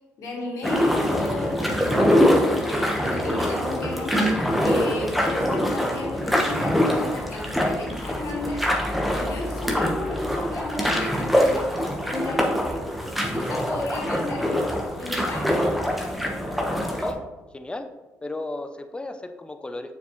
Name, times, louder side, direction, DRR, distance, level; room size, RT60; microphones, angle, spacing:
voice 1, 0.2-2.1 2.7-8.7 9.1-12.9 13.2-14.7 15.0-15.6, left 2 dB, 70° left, -2 dB, 1.9 m, -34 dB
sound 1, 0.6-17.1, equal, ahead, 1.3 m, -24 dB
voice 2, 17.5-17.9 18.2-20.0, left 2 dB, 20° left, 8 dB, 0.6 m, -34 dB
6.6 x 4.8 x 3.1 m, 1.1 s
supercardioid pair, 60°, 6 cm